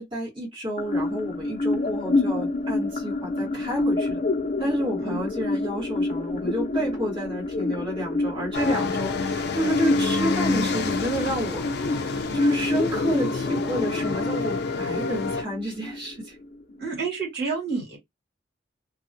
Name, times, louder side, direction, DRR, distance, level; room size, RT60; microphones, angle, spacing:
voice 1, 0.0-4.2 4.6-16.3, equal, 30° right, 1.6 m, -30 dB
sound 1, 0.8-16.8, left 2 dB, 35° left, 0.7 m, -28 dB
sound 2, 8.5-15.4, left 4 dB, 60° left, 0.4 m, -29 dB
voice 2, 16.8-18.0, right 5 dB, 60° right, 1.8 m, -29 dB
2.8 x 2.3 x 2.7 m
head